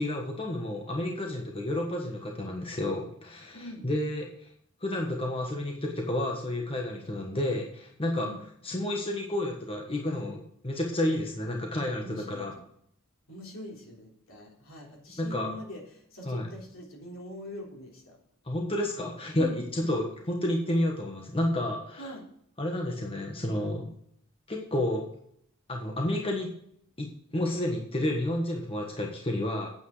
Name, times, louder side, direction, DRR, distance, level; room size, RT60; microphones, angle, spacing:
voice 1, 0.0-4.5 4.8-8.3 8.6-12.5 15.2-15.5 16.2-16.5 18.4-22.1 22.6-23.9 24.5-25.1 25.7-26.5 27.0-29.7, left 1 dB, 25° left, 0 dB, 1.4 m, -30 dB
voice 2, 3.5-3.8 8.2-8.4 12.0-12.7 13.3-18.2 19.3-20.0 22.0-22.3, left 1 dB, 70° left, -1 dB, 3.5 m, -43 dB
8.8 x 8.8 x 4.9 m, 0.67 s
head